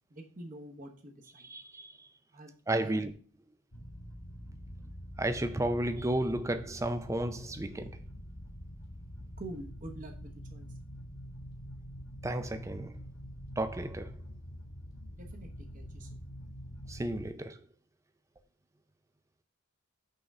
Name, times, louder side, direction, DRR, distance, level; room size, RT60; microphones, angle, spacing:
voice 1, 0.1-1.5 2.3-3.0 9.4-10.7 15.2-16.2, right 1 dB, 35° right, 1.0 m, -47 dB
voice 2, 1.4-2.1 2.7-3.1 5.2-8.0 12.2-13.0 13.6-14.1 16.9-17.6, right 1 dB, 15° right, 0.4 m, -33 dB
sound 1, 3.7-17.3, equal, 75° left, 2.8 m, -46 dB
5.6 x 3.8 x 5.4 m
head